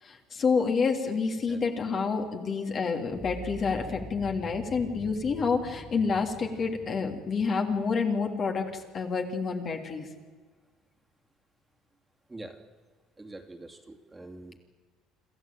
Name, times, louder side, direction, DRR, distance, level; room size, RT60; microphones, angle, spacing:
voice 1, 0.0-10.1, left 5 dB, 45° left, 3 dB, 3.1 m, -28 dB
sound 1, 3.1-9.2, left 1 dB, ahead, 2.3 m, -45 dB
voice 2, 13.2-14.6, right 2 dB, 15° right, 3 dB, 2.7 m, -44 dB
27.0 x 13.5 x 9.1 m, 1.5 s
supercardioid pair, 80°, 0 cm